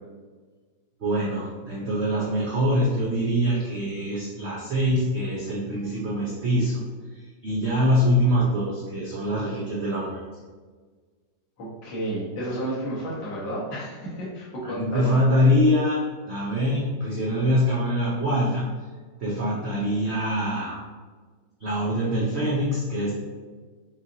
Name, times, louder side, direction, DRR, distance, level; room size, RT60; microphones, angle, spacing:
voice 1, 1.0-6.8 7.2-10.2 14.6-16.0 16.3-18.7 19.2-20.8 21.6-23.1, equal, 85° right, -5 dB, 0.5 m, -24 dB
voice 2, 11.6-15.2, right 1 dB, 80° left, -7 dB, 2.0 m, -31 dB
5.5 x 2.5 x 2.7 m, 1.5 s
omnidirectional pair, 2.0 m